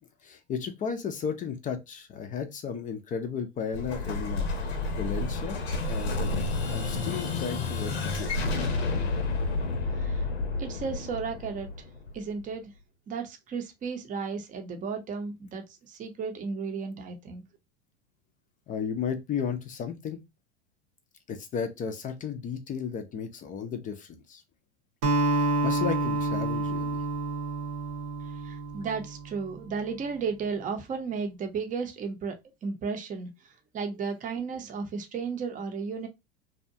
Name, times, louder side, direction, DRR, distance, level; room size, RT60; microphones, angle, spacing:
voice 1, 0.2-4.5 5.0-5.6 5.9-6.3 6.7-8.3 18.7-20.2 21.3-24.4 25.3-27.0, left 7 dB, 25° left, 0.4 m, -34 dB
Explosion, 3.7-12.4, left 3 dB, 85° left, 0.7 m, -30 dB
voice 2, 9.9-10.2 10.6-11.7 12.1-12.7 13.1-17.4 28.4-32.4 32.6-33.3 33.7-36.1, right 5 dB, 25° right, 0.6 m, -34 dB
Acoustic guitar, 25.0-29.5, right 2 dB, 65° right, 0.9 m, -28 dB
2.7 x 2.2 x 2.6 m
hypercardioid pair, 100°, 31 cm